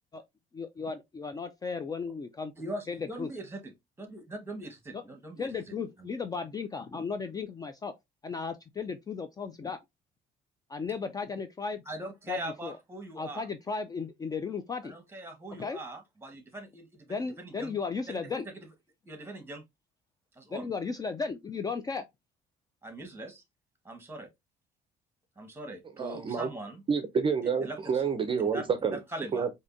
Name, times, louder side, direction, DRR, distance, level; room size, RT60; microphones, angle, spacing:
voice 1, 0.5-2.5 2.9-3.3 4.9-5.0 5.4-7.9 8.2-9.8 10.7-11.8 12.3-12.7 13.2-14.9 15.6-15.8 17.1-18.5 20.5-22.0, left 5 dB, 20° left, 0.4 m, -35 dB
voice 2, 2.6-3.7 4.0-6.1 11.8-13.5 14.8-17.7 18.1-18.2 19.0-19.6 20.3-20.7 22.8-23.4 23.8-24.3 25.4-26.8 27.6-28.0 28.4-29.5, right 1 dB, 15° right, 1.3 m, -41 dB
voice 3, 26.0-26.5 26.9-29.0 29.3-29.5, right 6 dB, 30° right, 0.5 m, -28 dB
4.8 x 2.7 x 2.5 m
cardioid pair, 110°, 17 cm